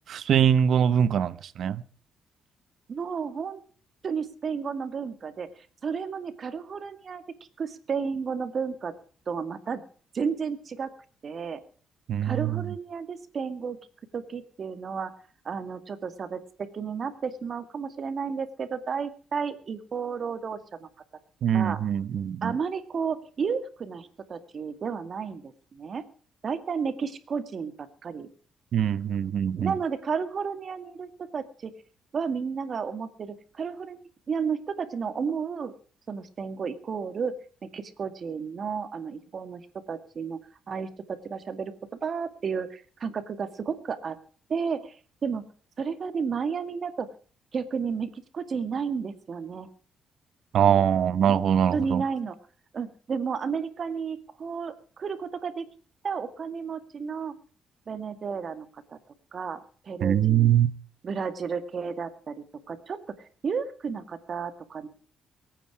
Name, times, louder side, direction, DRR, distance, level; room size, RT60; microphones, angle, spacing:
voice 1, 0.1-1.8 12.1-12.5 21.4-22.5 28.7-29.7 50.5-52.0 60.0-60.7, right 9 dB, 65° right, 0.9 m, -23 dB
voice 2, 2.9-3.6 4.0-5.5 5.8-7.2 7.6-8.9 9.3-9.8 10.1-10.9 11.2-11.6 12.2-13.8 14.1-15.1 15.4-20.9 21.5-21.8 22.4-26.0 26.4-28.3 29.6-31.7 32.1-34.0 34.3-35.7 36.1-37.3 37.7-40.4 40.7-41.7 42.0-44.2 44.5-45.0 45.2-45.4 45.8-47.1 47.5-49.7 51.2-51.4 51.7-52.4 52.7-55.7 56.0-57.4 57.9-59.0 59.3-60.5 61.0-64.9, right 6 dB, 50° right, 2.1 m, -32 dB
23.0 x 9.3 x 4.8 m
cardioid pair, 90°, 0 cm